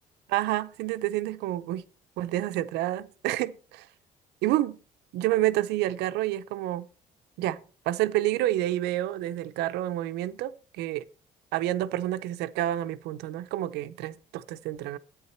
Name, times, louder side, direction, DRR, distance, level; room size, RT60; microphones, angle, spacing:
voice 1, 0.3-1.8 2.2-3.9 4.4-4.8 5.1-6.9 7.4-7.6 7.9-11.1 11.5-15.0, right 14 dB, 90° right, 0.6 m, -29 dB
9.7 x 8.6 x 4.3 m
cardioid pair, 110°, 17 cm